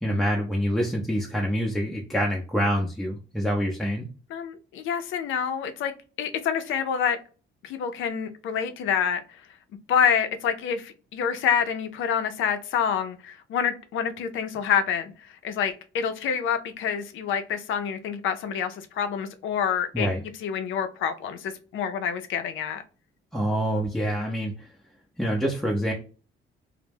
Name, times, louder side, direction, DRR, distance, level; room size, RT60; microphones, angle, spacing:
voice 1, 0.0-4.1 19.9-20.2 23.3-24.7 25.2-25.9, equal, ahead, 0.5 m, -26 dB
voice 2, 4.3-5.9 6.2-7.2 7.6-9.2 9.9-15.1 15.4-20.1 20.4-22.8, left 7 dB, 80° left, 0.5 m, -27 dB
2.1 x 2.1 x 3.2 m
cardioid pair, 90°, 20 cm